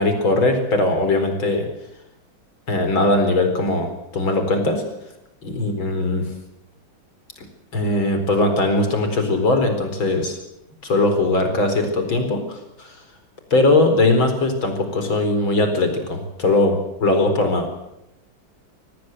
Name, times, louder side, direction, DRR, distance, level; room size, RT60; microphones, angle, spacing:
voice 1, 0.0-1.7 2.7-4.8 5.4-6.2 7.7-10.4 10.8-13.0 13.5-17.8, left 2 dB, 70° left, 6 dB, 5.1 m, -20 dB
25.5 x 19.0 x 8.0 m, 0.87 s
omnidirectional pair, 2.2 m